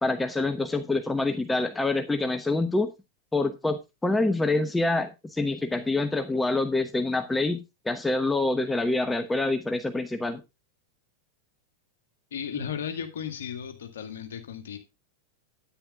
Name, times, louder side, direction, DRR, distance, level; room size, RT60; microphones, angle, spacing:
voice 1, 0.0-2.9 3.3-7.6 7.8-10.4, left 2 dB, 10° left, 0.9 m, -26 dB
voice 2, 12.3-14.8, left 8 dB, 65° left, 2.1 m, -35 dB
10.0 x 9.8 x 3.6 m
figure-of-eight pair, 90°, 0 cm